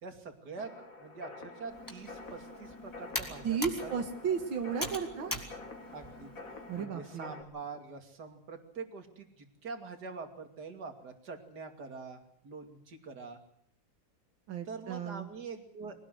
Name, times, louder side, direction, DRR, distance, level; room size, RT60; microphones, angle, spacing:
voice 1, 0.0-4.0 5.2-5.3 5.9-6.3 6.7-13.4 14.6-16.0, right 4 dB, 55° right, 6 dB, 3.1 m, -45 dB
sound 1, 0.6-7.4, left 3 dB, 45° left, 3.0 m, -48 dB
Computer keyboard, 1.7-6.8, equal, 10° left, 3.2 m, -42 dB
voice 2, 3.4-5.4 6.7-7.3 14.5-15.3, right 6 dB, 85° right, 6 dB, 2.4 m, -34 dB
23.5 x 18.5 x 7.8 m, 0.64 s
omnidirectional pair, 2.1 m